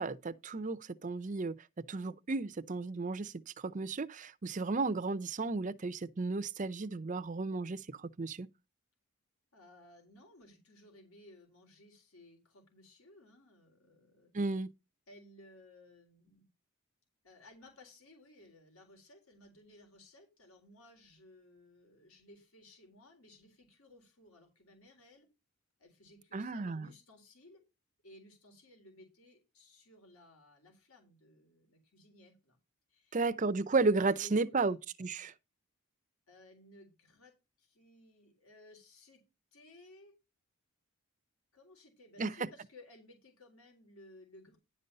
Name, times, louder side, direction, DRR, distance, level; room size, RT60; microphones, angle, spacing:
voice 1, 0.0-1.5 1.9-3.3 3.6-8.5 14.3-14.7 26.3-26.9 33.1-35.3 42.2-42.3, right 3 dB, 35° right, 0.5 m, -33 dB
voice 2, 9.5-14.3 15.1-16.5 17.2-25.3 25.8-27.6 28.0-32.6 32.9-33.2 34.2-34.7 36.3-39.2 39.5-40.1 41.5-44.6, left 1 dB, 75° left, 3.8 m, -59 dB
10.5 x 5.4 x 5.4 m
head